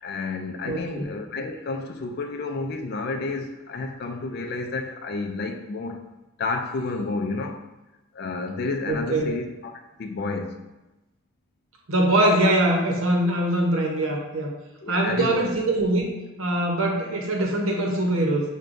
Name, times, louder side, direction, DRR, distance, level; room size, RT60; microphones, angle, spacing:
voice 1, 0.0-6.0 6.4-7.6 8.1-9.7 10.0-10.6 14.8-15.4, left 3 dB, 50° left, 0.3 m, -30 dB
voice 2, 0.6-1.1 8.9-9.3 11.9-14.5 14.9-16.0 16.4-18.4, right 1 dB, 80° right, 0.8 m, -22 dB
6.1 x 2.2 x 2.5 m
head